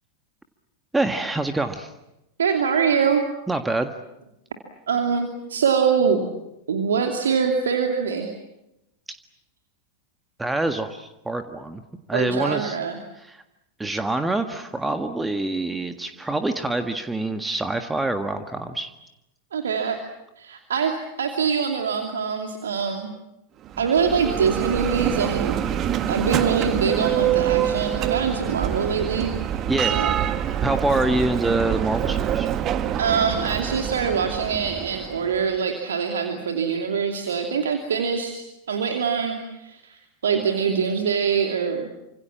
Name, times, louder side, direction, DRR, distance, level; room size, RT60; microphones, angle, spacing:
voice 1, 0.9-1.9 3.5-3.9 10.4-11.8 12.1-12.8 13.2-13.4 13.8-18.9 29.7-29.9 30.6-32.5, right 2 dB, 10° right, 7 dB, 1.7 m, -25 dB
voice 2, 2.4-3.2 4.9-6.2 6.7-8.3 12.1-13.0 19.5-20.0 20.4-23.1 23.8-25.6 26.1-29.3 29.9-30.2 33.0-41.9, right 6 dB, 65° right, 4 dB, 2.7 m, -24 dB
Bell, 23.6-35.5, right 10 dB, 30° right, 1.7 m, -26 dB
29.0 x 26.5 x 7.5 m, 0.89 s
figure-of-eight pair, 90°, 0 cm